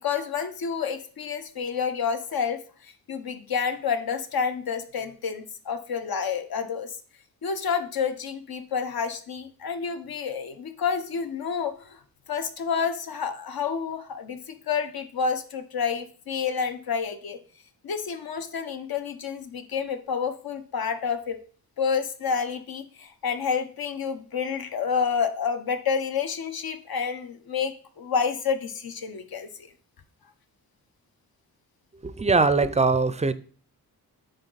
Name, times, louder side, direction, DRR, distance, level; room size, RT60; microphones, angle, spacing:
voice 1, 0.0-7.0 7.4-12.0 12.3-17.4 17.8-21.4 21.8-29.7, left 6 dB, 70° left, 0.9 m, -29 dB
voice 2, 32.0-33.3, right 3 dB, 20° right, 0.4 m, -21 dB
9.4 x 3.9 x 4.0 m
wide cardioid pair, 100°, 37 cm